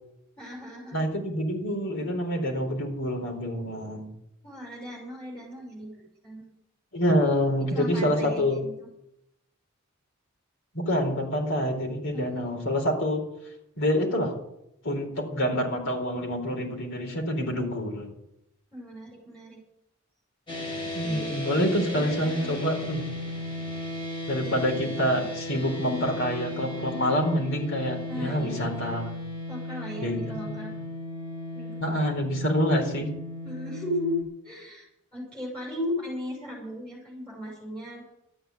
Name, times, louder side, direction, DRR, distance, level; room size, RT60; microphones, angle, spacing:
voice 1, 0.4-1.0 4.4-5.9 6.2-6.5 7.6-8.9 12.1-12.6 18.7-19.6 21.0-22.6 24.4-24.6 28.1-28.6 29.5-30.7 31.5-32.0 33.4-34.2 34.4-34.8 35.1-38.1, left 1 dB, 5° left, -6 dB, 6.7 m, -36 dB
voice 2, 0.9-4.1 6.9-8.6 10.7-13.2 13.8-14.3 14.8-18.1 20.9-23.0 24.3-29.1 30.0-30.8 31.8-33.1, equal, 65° left, 2 dB, 4.3 m, -27 dB
sound 1, 20.5-34.2, left 1 dB, 25° left, 5.0 m, -36 dB
13.0 x 9.6 x 9.2 m, 0.83 s
head